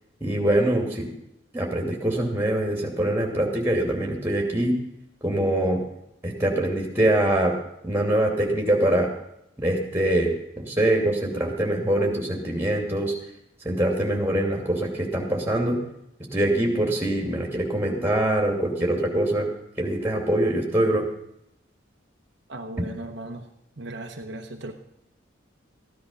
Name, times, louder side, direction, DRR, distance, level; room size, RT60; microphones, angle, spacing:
voice 1, 0.2-1.1 1.5-4.8 5.2-5.8 6.2-7.5 7.8-9.1 9.6-13.1 13.6-15.8 16.3-19.5 19.8-21.0, right 1 dB, 10° right, 0 dB, 2.6 m, -23 dB
voice 2, 22.5-23.5 23.8-24.7, right 1 dB, 60° right, 3 dB, 0.9 m, -37 dB
15.0 x 10.5 x 5.5 m, 0.80 s
head